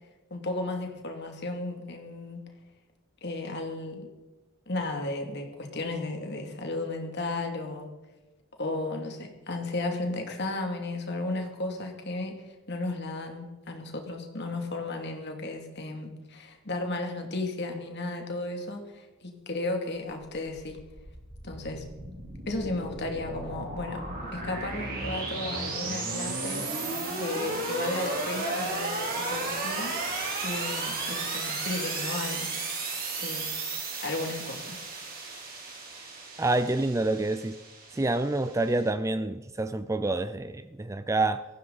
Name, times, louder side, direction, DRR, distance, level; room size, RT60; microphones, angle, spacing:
voice 1, 0.3-2.4 3.2-4.1 4.7-7.9 8.6-20.8 21.4-21.8 22.5-24.0 24.3-26.6 27.1-30.0 30.4-32.6 33.2-33.5 34.0-34.8, left 2 dB, 50° left, 3 dB, 2.5 m, -34 dB
sound 1, 20.3-38.8, right 3 dB, 40° right, 3.6 m, -34 dB
voice 2, 36.4-37.6 37.9-41.5, right 2 dB, 15° right, 12 dB, 0.4 m, -27 dB
17.5 x 15.0 x 4.1 m, 1.2 s
head